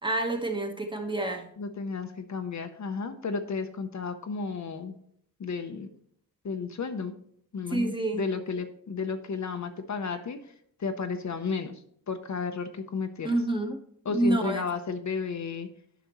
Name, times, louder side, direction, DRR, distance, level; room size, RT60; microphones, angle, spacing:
voice 1, 0.0-1.5 7.7-8.2 13.2-13.8 14.1-14.6, right 2 dB, 15° right, 3 dB, 1.1 m, -28 dB
voice 2, 1.6-4.9 5.4-5.9 6.4-7.1 7.5-10.5 10.8-13.3 14.0-15.7, left 5 dB, 55° left, 7 dB, 0.7 m, -33 dB
10.0 x 5.8 x 3.0 m, 0.67 s
wide cardioid pair, 140°, 35 cm